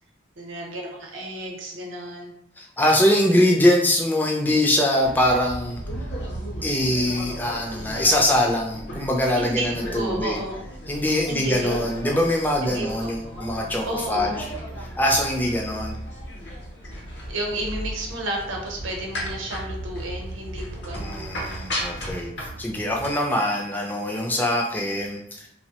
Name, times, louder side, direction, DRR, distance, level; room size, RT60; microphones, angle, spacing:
voice 1, 0.4-2.3 9.3-10.6 11.3-11.8 12.6-13.1 13.8-14.5 17.3-21.7, right 1 dB, 85° right, 0 dB, 0.7 m, -32 dB
voice 2, 2.6-5.8 6.6-10.4 10.9-14.5 15.0-16.0 20.9-22.3 22.6-25.5, left 1 dB, 10° left, -1 dB, 0.3 m, -23 dB
sound 1, 5.0-23.1, equal, 60° left, 0.7 m, -35 dB
3.0 x 2.0 x 2.8 m, 0.73 s
head